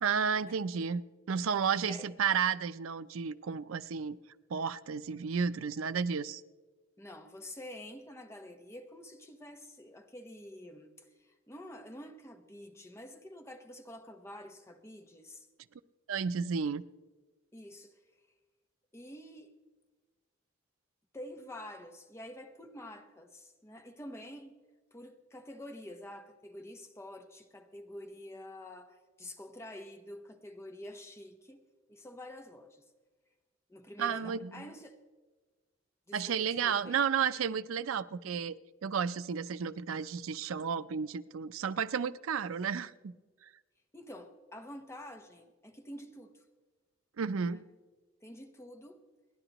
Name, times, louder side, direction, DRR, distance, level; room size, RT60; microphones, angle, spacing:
voice 1, 0.0-1.0 1.3-4.2 4.5-6.4 16.1-16.8 34.0-34.6 36.1-38.5 38.8-43.1 43.4-43.5 47.2-47.6, right 6 dB, 90° right, 0.5 m, -32 dB
voice 2, 7.0-15.5 17.5-17.9 18.9-19.5 21.1-24.5 24.9-31.6 31.9-32.8 33.7-35.0 36.1-37.0 43.9-46.4 47.5-47.6 48.2-49.0, left 1 dB, 15° left, 1.0 m, -48 dB
29.0 x 11.0 x 3.0 m
head